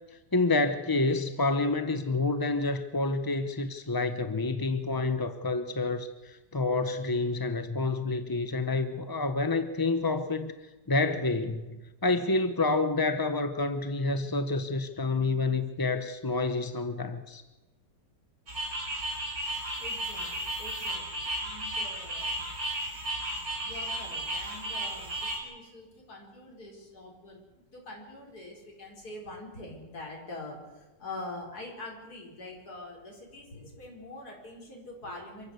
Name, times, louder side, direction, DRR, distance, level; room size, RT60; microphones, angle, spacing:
voice 1, 0.3-10.5 10.9-17.4, left 3 dB, 20° left, 0.6 m, -28 dB
sound 1, 18.5-25.4, right 1 dB, 55° right, 5.7 m, -34 dB
voice 2, 19.8-22.5 23.6-35.5, left 2 dB, 65° left, 5.4 m, -44 dB
27.5 x 14.0 x 8.3 m
omnidirectional pair, 1.8 m